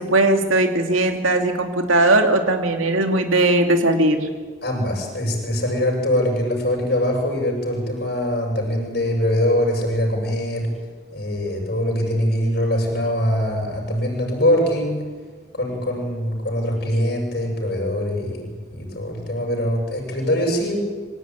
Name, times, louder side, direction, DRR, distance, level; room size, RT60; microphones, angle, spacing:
voice 1, 0.0-4.3, right 2 dB, 90° right, 4 dB, 2.8 m, -18 dB
voice 2, 4.6-10.7 11.1-15.0 15.5-20.8, left 1 dB, 55° left, 0 dB, 7.3 m, -23 dB
25.0 x 16.5 x 9.5 m, 1.5 s
head